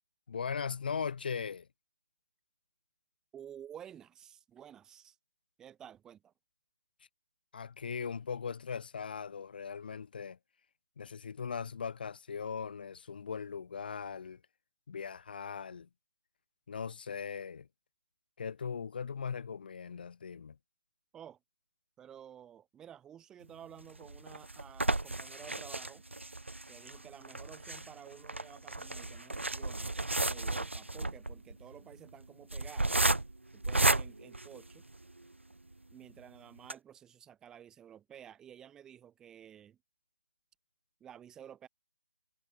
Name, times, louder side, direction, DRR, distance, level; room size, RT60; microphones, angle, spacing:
voice 1, 0.3-1.7 7.5-10.4 11.0-14.4 14.9-15.9 16.7-17.7 18.4-20.6, left 6 dB, 50° left, 2.9 m, -39 dB
voice 2, 3.3-5.2 5.6-6.3 21.1-21.4 22.0-26.0 26.7-33.0 33.5-34.8 35.9-39.8 41.0-41.7, right 9 dB, 10° right, 1.3 m, -52 dB
sound 1, 23.8-35.2 35.7-35.8 36.1-36.2 36.6-36.7, right 2 dB, 90° right, 0.9 m, -33 dB
figure-of-eight pair, 145°, 6 cm